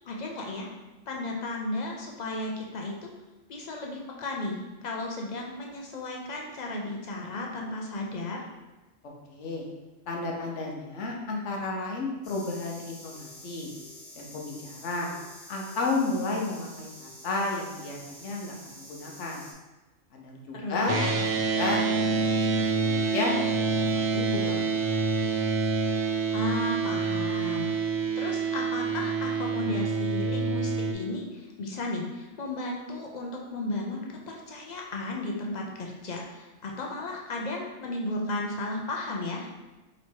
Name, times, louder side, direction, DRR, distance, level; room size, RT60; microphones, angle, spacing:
voice 1, 0.1-0.7 1.1-3.1 3.5-8.4 20.5-21.1 26.3-39.5, left 2 dB, 50° left, -1 dB, 0.5 m, -34 dB
voice 2, 9.0-9.6 10.1-13.7 14.1-15.1 15.5-19.4 20.1-21.1 21.5-22.3 22.6-25.0, left 3 dB, 70° left, -1 dB, 1.1 m, -32 dB
sound 1, 12.2-19.5, left 1 dB, 85° left, 1.3 m, -48 dB
sound 2, 20.9-30.9, right 4 dB, 70° right, 0.8 m, -27 dB
3.1 x 3.1 x 4.3 m, 1.1 s
omnidirectional pair, 1.3 m